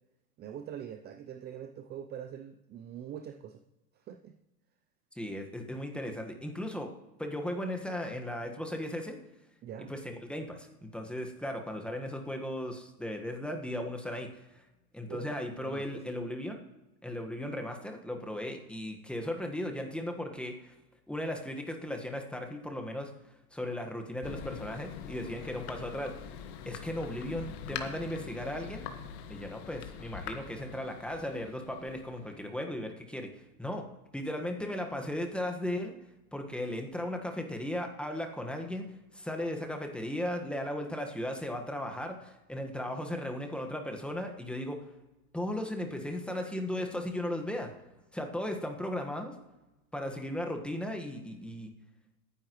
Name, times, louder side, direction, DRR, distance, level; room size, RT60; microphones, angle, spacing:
voice 1, 0.4-3.6 4.0-4.4 9.6-9.9 15.1-16.1, right 9 dB, 25° right, 8 dB, 0.5 m, -44 dB
voice 2, 5.2-6.9 7.2-9.2 9.9-14.6 14.9-16.6 17.0-20.7 21.1-23.1 23.5-26.3 26.6-28.8 29.3-33.3 33.6-33.8 34.1-35.9 36.3-38.9 39.1-44.8 45.3-47.7 48.1-49.4 49.9-51.7, left 1 dB, ahead, 3 dB, 1.4 m, -36 dB
Thunder, 24.2-32.6, left 8 dB, 55° left, 1.6 m, -44 dB
19.5 x 9.9 x 3.1 m, 1.0 s
hypercardioid pair, 115°, 44 cm